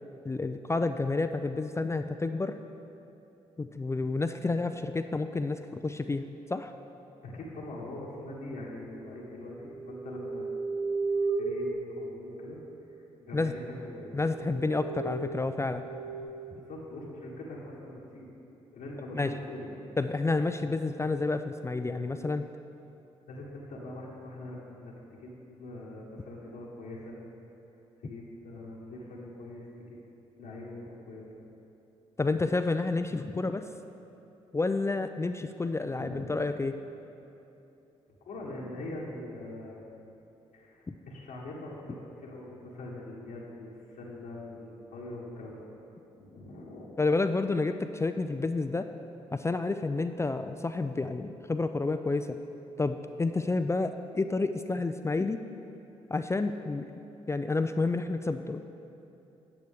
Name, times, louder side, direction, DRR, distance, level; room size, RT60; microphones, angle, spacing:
voice 1, 0.2-2.6 3.6-6.7 13.3-13.5 14.1-15.8 19.1-19.3 20.0-22.4 32.2-33.7 34.5-36.8 40.9-41.0 47.0-48.9 49.3-52.4 52.8-55.4 56.1-56.9 57.3-58.6, left 3 dB, 20° left, 8 dB, 0.4 m, -30 dB
voice 2, 7.2-10.5 11.4-12.6 12.9-13.6 13.9-14.2 16.5-18.3 18.7-19.8 23.3-24.9 25.2-25.3 25.6-27.2 28.0-30.0 30.4-31.3 36.0-36.2 38.2-39.8 40.5-45.7 46.1-47.0, left 1 dB, 70° left, -5 dB, 1.4 m, -43 dB
sound 1, 9.5-13.1 13.7-13.8 14.1-16.2, right 3 dB, 75° right, 2.1 m, -35 dB
9.1 x 8.0 x 3.5 m, 2.9 s
hypercardioid pair, 45°, 15 cm